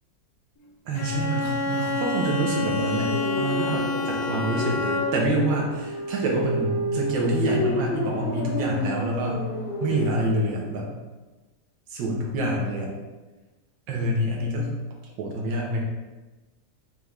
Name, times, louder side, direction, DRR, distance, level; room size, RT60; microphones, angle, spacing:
Bowed string instrument, 0.9-5.4, left 3 dB, 65° left, 1.0 m, -28 dB
voice 1, 0.9-9.4 9.8-10.9 11.9-12.9 13.9-14.7 15.2-15.8, right 1 dB, 90° right, -1 dB, 1.5 m, -26 dB
sound 1, 2.6-10.1, left 1 dB, 50° left, 0.7 m, -30 dB
5.6 x 2.4 x 3.3 m, 1.2 s
omnidirectional pair, 2.0 m